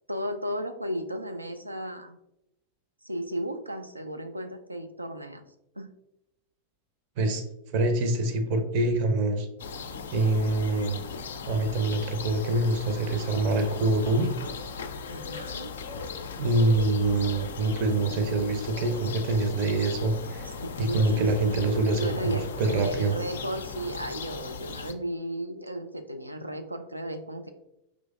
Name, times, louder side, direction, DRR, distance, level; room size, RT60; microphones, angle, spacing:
voice 1, 0.1-2.2 3.0-5.4 5.8-5.9 15.1-15.7 20.4-20.5 20.8-21.3 22.0-22.5 22.8-27.5, equal, 85° right, 6 dB, 0.4 m, -34 dB
voice 2, 7.7-9.5 10.1-11.0 11.5-14.3 16.4-20.5 20.8-23.1, right 2 dB, 45° right, 7 dB, 0.6 m, -25 dB
sound 1, 9.6-24.9, left 5 dB, 65° left, 0.3 m, -38 dB
5.0 x 3.1 x 2.4 m, 0.85 s
figure-of-eight pair, 90°, 0 cm